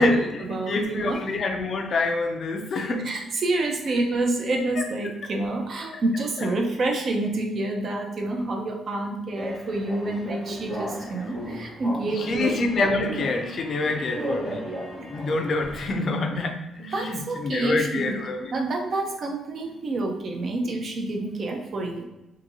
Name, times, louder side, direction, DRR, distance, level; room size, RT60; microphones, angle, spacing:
voice 1, 0.0-1.2 3.0-12.5 16.9-18.2 18.5-22.0, right 2 dB, 50° right, 2 dB, 0.5 m, -28 dB
voice 2, 0.7-3.1 6.4-6.5 11.0-11.2 12.1-14.7 15.0-18.5, left 3 dB, 50° left, 4 dB, 0.4 m, -26 dB
sound 1, 9.3-15.9, equal, 30° right, 1.2 m, -35 dB
2.8 x 2.6 x 2.6 m, 0.98 s
cardioid pair, 90°, 0 cm